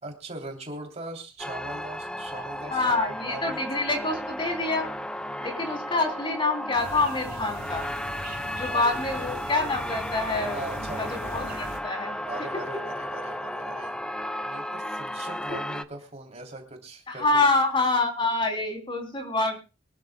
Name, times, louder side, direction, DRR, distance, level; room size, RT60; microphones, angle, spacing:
voice 1, 0.0-3.7 8.7-9.0 10.5-11.0 12.3-13.9 14.4-17.3, right 2 dB, 35° right, 3 dB, 3.3 m, -40 dB
sound 1, 1.4-15.8, left 1 dB, 5° left, 0.6 m, -34 dB
voice 2, 2.7-4.9 5.4-7.9 8.5-12.2 12.5-12.6 15.5-15.6 17.1-19.6, left 3 dB, 25° left, 3 dB, 3.3 m, -26 dB
sound 2, 6.8-11.8, right 2 dB, 55° right, 3.7 m, -40 dB
24.5 x 13.0 x 2.3 m, 0.29 s
head